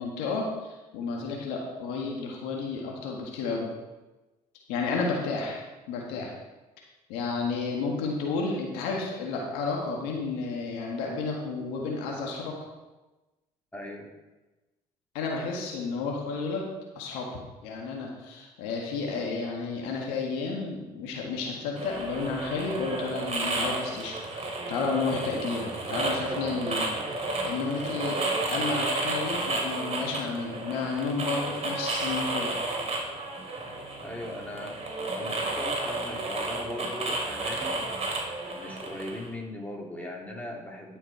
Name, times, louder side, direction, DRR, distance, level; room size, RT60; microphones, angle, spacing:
voice 1, 0.0-3.7 4.7-5.6 5.9-6.3 7.1-12.5 15.1-16.6 16.9-17.3 17.6-32.6, left 4 dB, 85° left, -1 dB, 1.6 m, -32 dB
voice 2, 13.7-14.1 34.0-38.1 38.5-41.0, left 1 dB, 10° left, -2 dB, 3.1 m, -39 dB
sound 1, 21.8-39.3, right 2 dB, 40° right, 3.0 m, -32 dB
11.0 x 6.5 x 4.5 m, 1.1 s
supercardioid pair, 65°, 17 cm